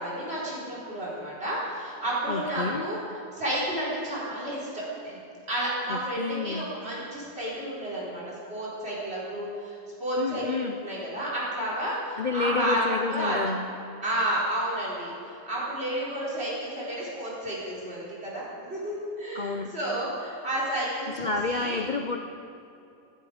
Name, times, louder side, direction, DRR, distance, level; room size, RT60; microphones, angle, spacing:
voice 1, 0.0-3.0 3.3-5.2 5.5-8.2 8.5-13.4 14.0-21.9, right 1 dB, 40° right, -6 dB, 4.4 m, -31 dB
voice 2, 2.3-2.9 5.9-6.7 10.2-10.8 12.2-13.7 19.3-19.7 21.2-22.2, left 4 dB, 70° left, 4 dB, 0.4 m, -30 dB
16.0 x 12.5 x 5.0 m, 2.6 s
omnidirectional pair, 1.7 m